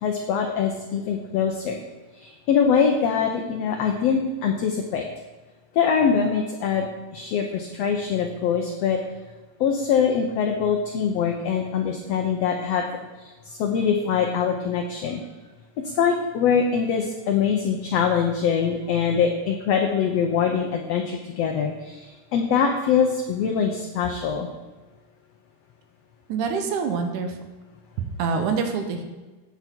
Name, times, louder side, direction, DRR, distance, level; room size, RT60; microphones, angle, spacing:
voice 1, 0.0-1.8 2.1-5.0 5.7-6.9 7.1-9.0 9.6-12.8 13.2-15.2 15.9-24.5, left 7 dB, 70° left, 3 dB, 1.6 m, -23 dB
voice 2, 26.3-27.4 28.0-29.0, right 5 dB, 75° right, 6 dB, 2.4 m, -26 dB
9.5 x 8.2 x 4.5 m, 1.2 s
omnidirectional pair, 3.7 m